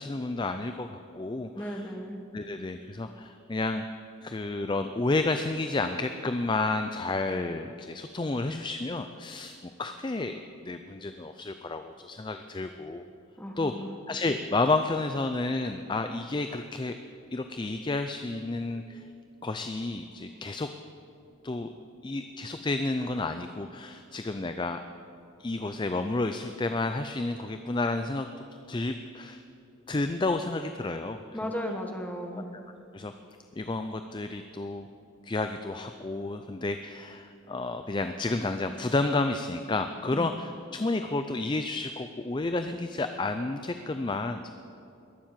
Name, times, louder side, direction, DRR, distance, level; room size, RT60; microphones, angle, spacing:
voice 1, 0.0-1.9 2.3-3.8 4.2-13.0 13.6-13.7 14.1-17.0 17.3-19.0 19.4-20.7 21.4-21.7 22.0-24.8 25.4-28.3 28.7-29.4 29.9-31.2 32.5-32.6 32.9-33.1 33.6-34.9 35.2-44.5, left 2 dB, 25° left, 8 dB, 0.4 m, -31 dB
voice 2, 1.5-2.2 13.4-14.0 31.3-32.5 40.1-40.3, equal, 10° left, 2 dB, 1.3 m, -35 dB
21.0 x 7.5 x 7.5 m, 2.7 s
head